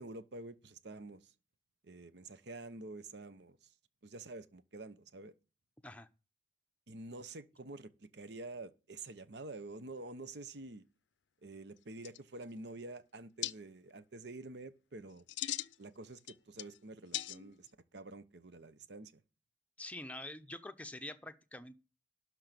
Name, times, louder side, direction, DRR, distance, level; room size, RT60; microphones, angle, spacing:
voice 1, 0.0-1.3 1.8-3.7 4.0-5.3 6.9-10.8 11.4-15.2 15.8-19.1, right 2 dB, 70° right, 0.9 m, -48 dB
sound 1, 11.8-11.9 12.0-12.6 13.4-13.5 15.1-15.8 16.2-16.8 17.1-17.7, left 14 dB, 85° left, 0.5 m, -39 dB
voice 2, 19.8-21.8, left 1 dB, 10° left, 0.7 m, -46 dB
12.0 x 4.6 x 6.8 m
head